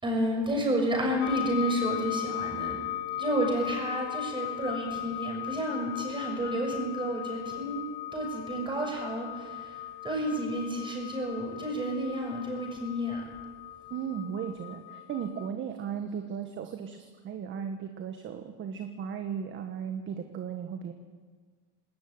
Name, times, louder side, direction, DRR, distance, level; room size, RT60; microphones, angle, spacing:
voice 1, 0.0-2.8 3.1-7.8 8.1-13.2, right 1 dB, 10° right, 1 dB, 6.6 m, -31 dB
sound 1, 1.2-15.5, left 12 dB, 55° left, 1.9 m, -38 dB
voice 2, 13.9-20.9, right 7 dB, 30° right, 6 dB, 1.5 m, -36 dB
20.0 x 18.5 x 9.4 m, 1.5 s
supercardioid pair, 155°, 42 cm